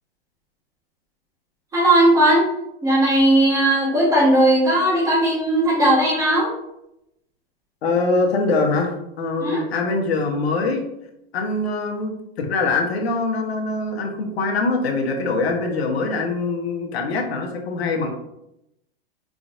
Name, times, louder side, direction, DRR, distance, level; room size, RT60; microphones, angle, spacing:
voice 1, 1.7-2.4 2.8-6.5 9.4-9.6, right 1 dB, 10° right, -5 dB, 1.3 m, -17 dB
voice 2, 7.8-10.9 11.3-18.1, left 3 dB, 85° left, 2 dB, 1.1 m, -23 dB
4.8 x 3.8 x 2.6 m, 0.84 s
supercardioid pair, 160°, 31 cm